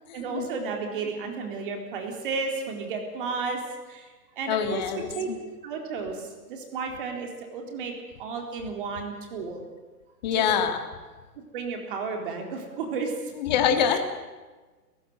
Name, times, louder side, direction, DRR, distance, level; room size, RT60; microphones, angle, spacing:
voice 1, 0.1-3.6 3.9-4.1 4.4-4.8 5.1-5.3 5.6-7.9 8.2-9.7 10.3-10.5 11.5-13.1 13.9-14.0, right 5 dB, 35° right, 3 dB, 3.9 m, -33 dB
voice 2, 4.5-5.4 10.2-10.8 13.4-14.0, left 8 dB, 25° left, 7 dB, 1.8 m, -24 dB
30.0 x 15.0 x 7.8 m, 1.3 s
hypercardioid pair, 170°, 49 cm